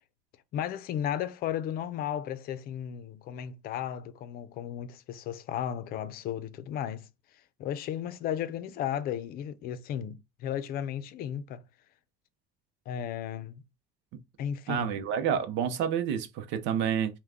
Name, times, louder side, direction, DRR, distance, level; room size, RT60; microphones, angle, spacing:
voice 1, 0.5-7.1 7.6-11.6 12.9-13.6 14.4-15.0, left 10 dB, 50° left, 0.6 m, -34 dB
voice 2, 14.7-17.2, right 8 dB, 65° right, 0.7 m, -29 dB
5.6 x 2.2 x 3.6 m
cardioid pair, 145°, 20 cm